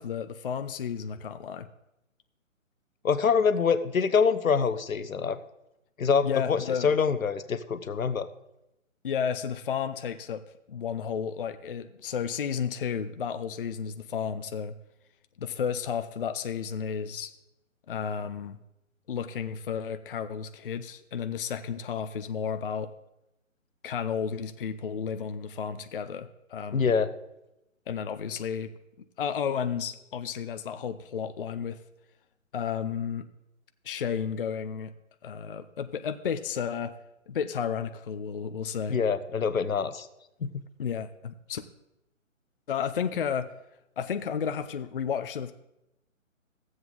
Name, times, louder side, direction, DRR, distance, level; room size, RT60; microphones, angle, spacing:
voice 1, 0.0-1.7 6.2-6.9 9.0-10.4 10.7-14.7 15.4-17.3 17.9-18.6 19.1-22.9 23.8-26.8 27.9-28.7 29.2-31.8 32.5-33.3 33.8-34.9 35.2-36.9 37.3-39.0 40.8-41.6 42.7-43.5 44.0-45.5, left 7 dB, 45° left, 10 dB, 0.5 m, -32 dB
voice 2, 3.0-5.4 6.0-8.3 26.7-27.1 38.9-40.1 40.4-40.5, left 6 dB, 85° left, 13 dB, 0.8 m, -25 dB
13.5 x 7.9 x 3.9 m, 0.89 s
figure-of-eight pair, 145°, 40 cm